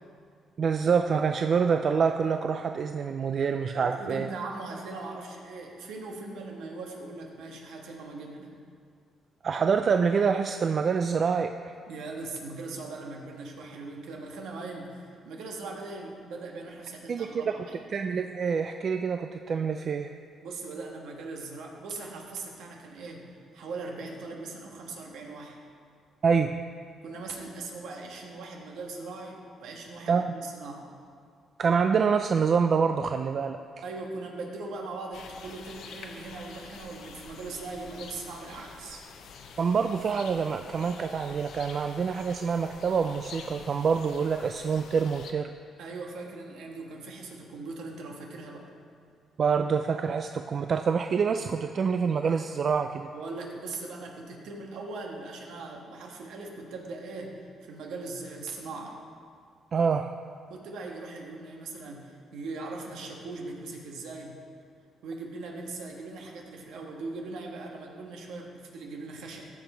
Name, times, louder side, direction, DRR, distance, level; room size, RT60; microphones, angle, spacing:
voice 1, 0.6-4.3 9.4-11.7 17.1-17.3 17.9-20.1 26.2-26.6 30.1-30.3 31.6-33.6 39.6-45.5 49.4-53.1 59.7-60.1, right 6 dB, 50° right, 7 dB, 0.3 m, -26 dB
voice 2, 3.7-8.5 11.9-17.8 20.4-23.3 23.5-25.6 27.0-30.9 33.8-39.0 45.8-48.7 53.1-57.3 57.6-59.0 60.5-64.4 65.0-69.5, right 3 dB, 85° right, 1 dB, 1.4 m, -40 dB
sound 1, 35.1-45.3, left 5 dB, 80° left, 0.8 m, -47 dB
15.0 x 5.2 x 4.4 m, 2.2 s
cardioid pair, 90°, 0 cm